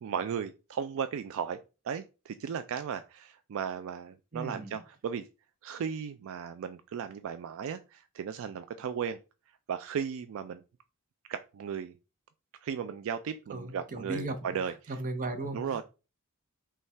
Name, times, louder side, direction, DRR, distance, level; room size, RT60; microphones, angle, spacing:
voice 1, 0.0-1.6 1.8-5.3 5.6-9.2 9.7-10.6 11.3-11.9 12.6-15.0 15.5-15.8, right 7 dB, 65° right, 0.3 m, -36 dB
voice 2, 4.3-4.8 13.5-14.4 14.9-15.8, right 2 dB, 40° right, 0.7 m, -36 dB
5.4 x 2.4 x 3.3 m
head